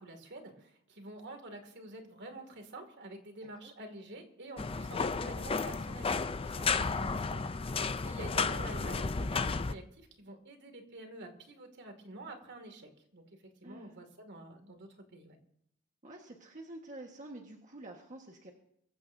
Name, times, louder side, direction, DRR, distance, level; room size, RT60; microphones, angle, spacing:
voice 1, 0.0-15.4, right 2 dB, 55° right, 5 dB, 2.5 m, -48 dB
sound 1, 4.6-9.7, left 4 dB, 25° left, 0.5 m, -33 dB
voice 2, 6.4-7.0 13.6-14.1 16.0-18.5, right 1 dB, 35° right, 1 dB, 1.6 m, -49 dB
23.5 x 15.0 x 2.8 m, 0.73 s
head